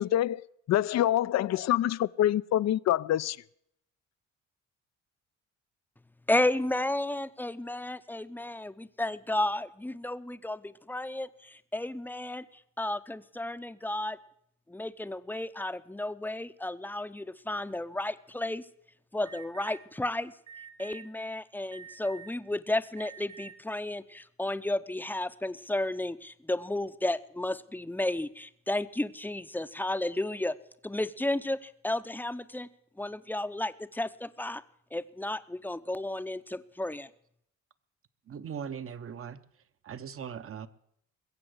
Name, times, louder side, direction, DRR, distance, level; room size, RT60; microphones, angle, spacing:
voice 1, 0.0-3.4, left 12 dB, 60° left, 0.5 m, -26 dB
voice 2, 6.3-12.4 12.8-14.2 14.7-18.6 19.1-20.3 20.8-30.6 30.8-32.7 33.0-34.6 34.9-37.1, left 1 dB, 5° left, 0.7 m, -33 dB
Alarm, 19.3-19.8 20.5-21.0 21.7-22.4 22.9-23.5, right 7 dB, 75° right, 4.2 m, -47 dB
voice 3, 38.3-39.4 39.8-40.7, right 7 dB, 45° right, 1.0 m, -39 dB
21.5 x 7.7 x 8.0 m
cardioid pair, 90°, 30 cm